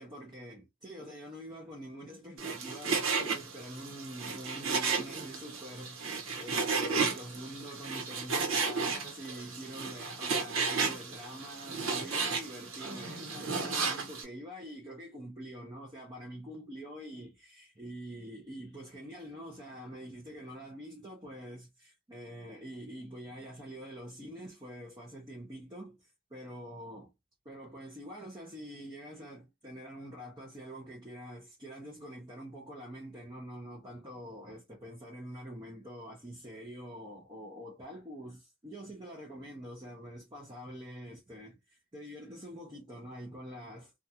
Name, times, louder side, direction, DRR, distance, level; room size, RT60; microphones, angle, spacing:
voice 1, 0.0-27.1 27.4-43.9, equal, 20° right, 0.7 m, -45 dB
Frying (food), 2.4-14.2, right 5 dB, 85° right, 0.9 m, -33 dB
2.6 x 2.3 x 2.7 m
head